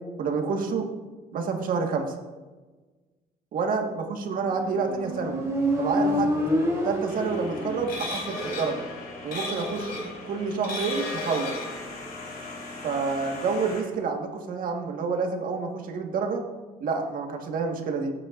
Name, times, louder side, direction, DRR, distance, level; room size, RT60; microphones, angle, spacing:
voice 1, 0.2-0.9 1.3-2.2 3.5-5.4 5.8-6.4 6.8-8.8 9.2-11.5 12.8-16.4 16.8-18.1, right 5 dB, 60° right, 3 dB, 1.5 m, -28 dB
Motorcycle, 4.5-8.1, equal, 20° right, 3.5 m, -27 dB
sound 1, 7.1-13.8, left 2 dB, 70° left, 3.6 m, -35 dB
15.5 x 8.7 x 2.5 m, 1.3 s
cardioid pair, 125°, 16 cm